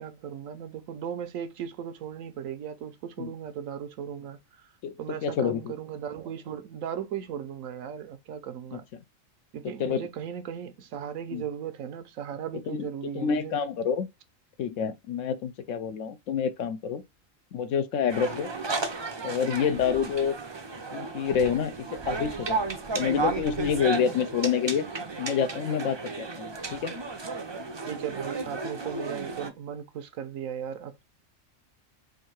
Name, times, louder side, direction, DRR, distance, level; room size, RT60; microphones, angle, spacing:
voice 1, 0.0-4.7 5.0-8.8 9.5-13.6 27.9-31.0, right 8 dB, 80° right, 1.1 m, -37 dB
voice 2, 5.2-5.7 9.8-10.1 11.3-11.4 12.7-12.9 13.1-14.1 14.6-17.0 17.5-18.5 19.2-20.3 20.9-22.6 23.0-24.9 25.2-26.9, left 7 dB, 70° left, 1.0 m, -28 dB
sound 1, 18.1-29.5, right 3 dB, 40° right, 0.4 m, -33 dB
3.7 x 2.7 x 4.4 m
omnidirectional pair, 1.4 m